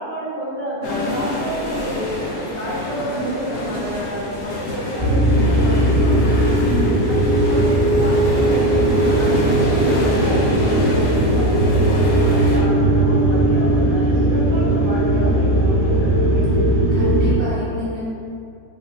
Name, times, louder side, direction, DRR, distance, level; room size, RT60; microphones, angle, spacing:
voice 1, 0.0-6.8 7.1-16.6, equal, 90° right, -11 dB, 2.0 m, -30 dB
sound 1, 0.8-12.6, left 1 dB, 80° left, 0.6 m, -28 dB
sound 2, 5.0-17.3, right 1 dB, 60° right, 1.2 m, -17 dB
voice 2, 6.7-7.1 16.9-18.0, equal, 10° right, -12 dB, 0.6 m, -28 dB
4.1 x 2.0 x 2.5 m, 2.4 s
omnidirectional pair, 1.8 m